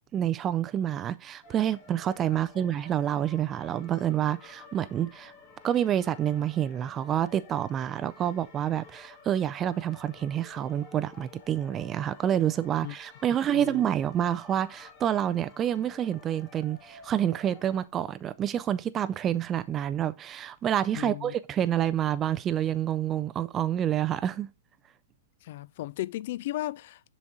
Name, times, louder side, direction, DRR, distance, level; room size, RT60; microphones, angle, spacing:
voice 1, 0.1-5.3 5.6-24.5, right 10 dB, 25° right, 0.3 m, -28 dB
sound 1, 1.4-17.9, left 5 dB, 40° left, 2.3 m, -52 dB
voice 2, 13.5-13.8 20.9-21.3 25.4-27.1, left 15 dB, 60° left, 0.3 m, -35 dB
7.0 x 4.1 x 4.8 m
hypercardioid pair, 135°, 0 cm